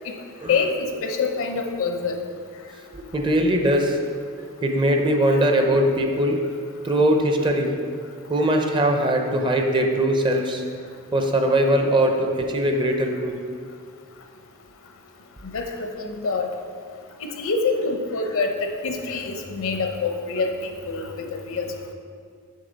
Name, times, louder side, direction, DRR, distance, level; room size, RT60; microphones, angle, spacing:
voice 1, 0.5-2.2 15.5-16.5 17.2-20.5 20.9-21.1 21.5-21.7, left 4 dB, 65° left, 4 dB, 0.7 m, -25 dB
voice 2, 2.9-4.0 4.6-6.4 6.8-7.8 8.3-10.6 11.1-13.4, right 1 dB, 20° right, 3 dB, 0.5 m, -21 dB
6.6 x 5.7 x 3.9 m, 2.1 s
head